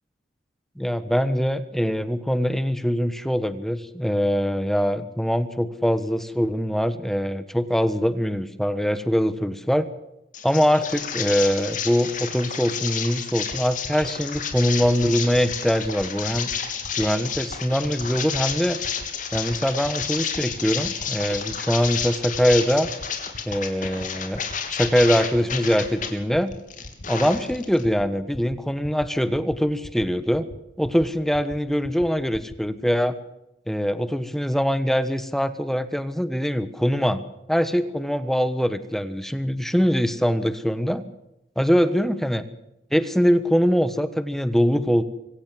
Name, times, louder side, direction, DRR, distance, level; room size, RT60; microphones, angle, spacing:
voice 1, 0.8-9.9 10.4-16.5 17.0-18.8 19.3-22.9 23.5-24.4 24.7-26.5 27.1-30.5 30.8-33.2 33.7-37.2 37.5-41.0 41.6-42.4 42.9-45.0, equal, ahead, 12 dB, 1.2 m, -23 dB
sound 1, 10.3-26.1 26.5-27.8, left 7 dB, 45° left, 3.4 m, -31 dB
sound 2, 13.5-13.6 13.8-14.1 14.3-14.6 14.8-15.1 15.3-15.6 15.8-16.1 16.3-16.6 16.8-17.1 17.3-17.6 17.8-18.1 18.3-18.6 18.8-19.1 19.3-19.6 19.8-20.1 20.3-20.6 20.8-21.1 21.3-21.6 21.8-22.1 22.3-22.6 22.8-23.1 23.3-23.6 23.8-24.1 24.3-24.6 24.8-25.1 25.3-25.6 25.8-26.1 26.3-26.6 26.8-27.1 27.3-27.6 27.8-28.1 28.3-28.6 28.8-29.1 29.3-29.6 29.8-30.1 30.3-30.6 30.8-31.1 31.3-31.6 31.8-32.1 32.3-32.6, left 1 dB, 65° left, 1.7 m, -40 dB
24.5 x 16.5 x 7.6 m, 0.87 s
head